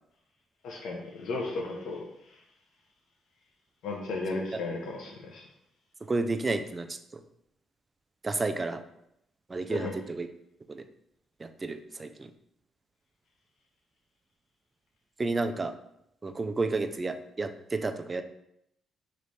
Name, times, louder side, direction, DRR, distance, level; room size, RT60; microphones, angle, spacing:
voice 1, 0.6-2.4 3.8-5.4 9.7-9.9, left 3 dB, 75° left, -1 dB, 0.7 m, -35 dB
voice 2, 6.1-7.2 8.2-8.8 9.5-10.3 10.7-10.8 11.4-12.3 15.2-15.7 16.2-18.2, right 3 dB, 25° right, 8 dB, 0.4 m, -31 dB
3.2 x 3.1 x 4.0 m, 0.78 s
cardioid pair, 90°, 0 cm